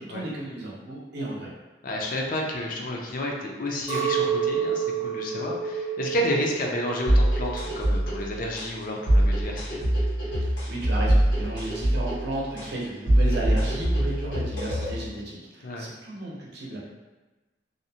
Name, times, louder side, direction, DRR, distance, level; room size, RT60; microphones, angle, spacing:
voice 1, 0.0-1.5 10.4-16.8, right 1 dB, 65° right, -4 dB, 0.6 m, -34 dB
voice 2, 1.8-9.8 15.6-15.9, left 1 dB, 50° left, -1 dB, 0.4 m, -30 dB
Chink clink, 3.9-8.2 8.5-9.3, right 7 dB, 25° right, 0.6 m, -30 dB
sound 1, 7.1-15.1, right 1 dB, 85° left, 1.3 m, -24 dB
2.6 x 2.0 x 2.7 m, 1.2 s
head